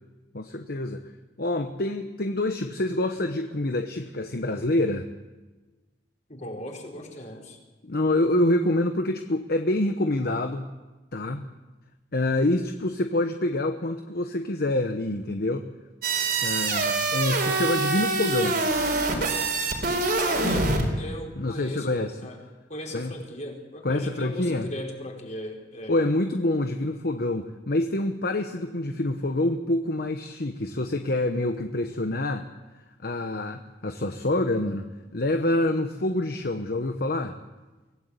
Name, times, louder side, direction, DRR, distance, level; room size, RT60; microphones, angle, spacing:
voice 1, 0.3-1.0 1.4-5.1 7.8-10.7 11.1-11.4 12.1-15.7 16.4-18.6 21.4-22.2 22.9-23.1 23.8-24.7 25.9-32.5 33.0-37.4, left 1 dB, 60° left, 6 dB, 1.1 m, -26 dB
voice 2, 6.3-7.6 20.2-22.4 22.7-25.9, left 1 dB, 45° left, 0 dB, 4.8 m, -38 dB
sound 1, 16.0-20.9, right 3 dB, 60° right, 4.5 m, -25 dB
24.0 x 17.0 x 8.3 m, 1.2 s
head